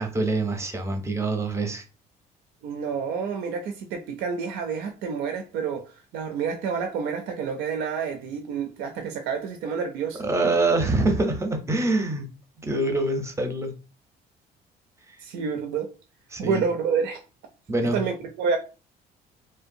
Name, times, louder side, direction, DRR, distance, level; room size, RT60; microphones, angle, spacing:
voice 1, 0.0-1.8 10.2-12.3 12.6-13.7 16.3-16.6 17.7-18.0, right 2 dB, 15° right, 0.5 m, -25 dB
voice 2, 2.6-10.3 15.2-15.9 16.4-17.2 17.9-18.6, right 6 dB, 80° right, 0.4 m, -29 dB
2.7 x 2.2 x 2.5 m
cardioid pair, 110°, 17 cm